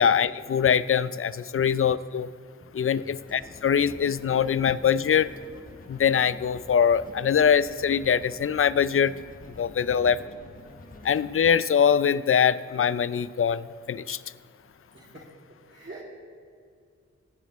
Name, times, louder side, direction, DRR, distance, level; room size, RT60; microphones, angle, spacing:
voice 1, 0.0-2.3 2.7-5.3 5.9-9.1 9.6-10.2 11.0-14.2, left 7 dB, 50° left, 17 dB, 0.4 m, -23 dB
sound 1, 3.3-11.3, left 2 dB, 30° left, 1.2 m, -47 dB
voice 2, 9.9-10.2 14.9-15.3 15.7-16.0, right 3 dB, 40° right, -5 dB, 2.5 m, -45 dB
18.0 x 15.0 x 3.1 m, 2.3 s
cardioid pair, 70°, 29 cm